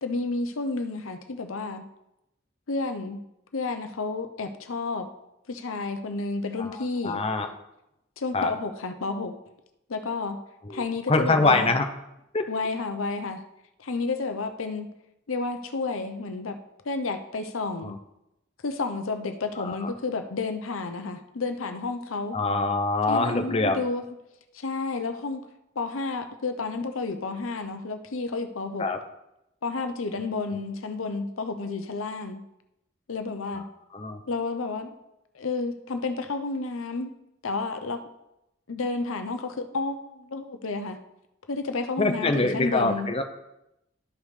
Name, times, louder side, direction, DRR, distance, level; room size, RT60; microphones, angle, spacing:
voice 1, 0.0-1.8 2.7-3.2 3.5-5.1 5.5-7.2 8.2-9.3 9.9-10.4 10.7-11.7 12.5-13.4 13.8-14.9 15.3-16.6 16.9-18.0 18.6-22.4 23.1-24.0 24.5-25.5 25.8-28.8 29.6-32.4 33.1-33.6 34.3-34.9 35.3-37.2 37.4-38.0 38.7-41.0 41.5-43.1, left 3 dB, 85° left, 8 dB, 0.7 m, -31 dB
voice 2, 6.6-7.5 8.3-8.5 10.6-11.9 12.3-12.5 17.8-18.0 19.6-19.9 22.3-23.8 28.8-29.0 33.5-33.6 33.9-34.2 42.0-43.2, left 3 dB, 30° left, 6 dB, 0.7 m, -25 dB
12.5 x 5.2 x 3.3 m, 0.86 s
head